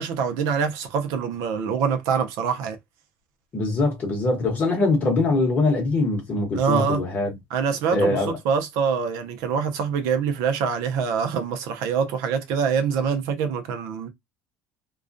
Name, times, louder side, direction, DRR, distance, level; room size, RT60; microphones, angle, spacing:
voice 1, 0.0-2.8 6.5-7.0 7.5-14.1, right 6 dB, 70° right, 0.5 m, -25 dB
voice 2, 3.5-7.4 7.9-8.4, left 2 dB, 30° left, 0.9 m, -22 dB
2.3 x 2.1 x 2.5 m
cardioid pair, 175°, 6 cm